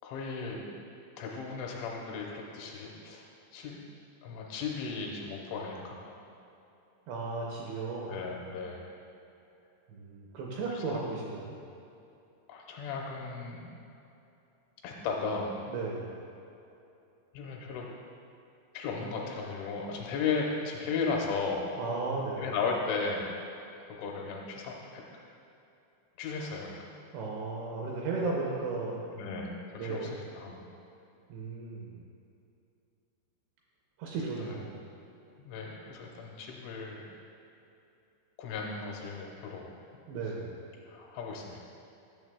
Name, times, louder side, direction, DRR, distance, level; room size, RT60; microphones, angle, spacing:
voice 1, 0.0-0.6 1.2-3.8 4.2-6.3 8.1-8.8 10.7-11.0 12.5-13.7 14.8-15.5 17.3-17.9 18.7-21.7 22.4-23.3 23.8-25.0 26.2-26.9 29.1-30.7 34.4-34.7 35.5-37.1 38.4-39.7 40.9-41.6, left 4 dB, 85° left, -1 dB, 3.0 m, -36 dB
voice 2, 7.1-8.2 9.9-11.5 15.7-16.1 21.8-22.5 27.1-29.0 29.7-30.1 31.3-32.0 34.0-34.7 40.1-40.6, right 3 dB, 80° right, -3 dB, 2.5 m, -35 dB
11.0 x 6.7 x 2.2 m, 2.8 s
omnidirectional pair, 5.6 m